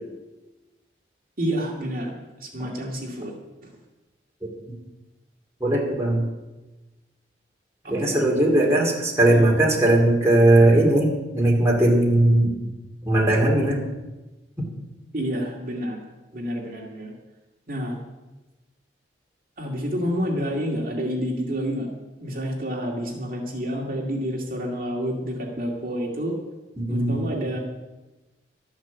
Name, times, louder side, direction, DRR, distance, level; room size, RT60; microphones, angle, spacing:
voice 1, 1.4-3.3 3.6-3.7 7.8-8.2 9.3-9.5 15.1-16.0 16.3-17.1 17.7-18.0 19.6-21.9 22.2-26.3 26.9-27.6, equal, 50° right, -1 dB, 2.3 m, -29 dB
voice 2, 5.6-6.2 7.9-12.5 13.0-13.8 26.9-27.2, right 1 dB, 15° right, -3 dB, 2.8 m, -19 dB
12.5 x 10.5 x 7.1 m, 1.1 s
head